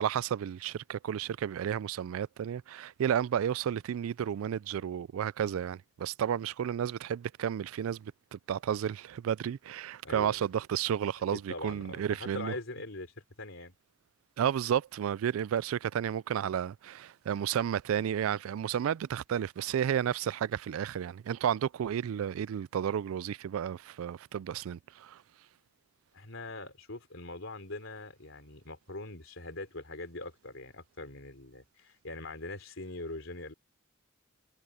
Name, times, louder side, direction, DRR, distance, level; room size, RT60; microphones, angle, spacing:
voice 1, 0.0-12.5 14.4-25.2, right 9 dB, 80° right, 0.3 m, -32 dB
voice 2, 10.0-10.5 11.3-13.8 26.1-33.5, left 2 dB, 65° left, 4.1 m, -42 dB
head